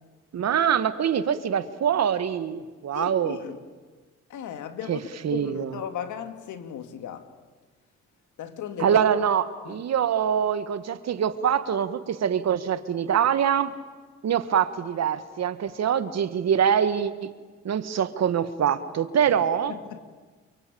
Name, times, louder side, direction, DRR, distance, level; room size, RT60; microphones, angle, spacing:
voice 1, 0.3-3.4 4.9-5.0 5.2-5.8 8.8-13.7 14.2-17.3 17.6-19.7, right 8 dB, 60° right, 1.8 m, -24 dB
voice 2, 2.9-3.6 4.3-7.3 8.4-9.0 9.6-9.8 19.7-20.0, left 8 dB, 75° left, 2.5 m, -36 dB
29.0 x 23.5 x 8.7 m
cardioid pair, 90°, 30 cm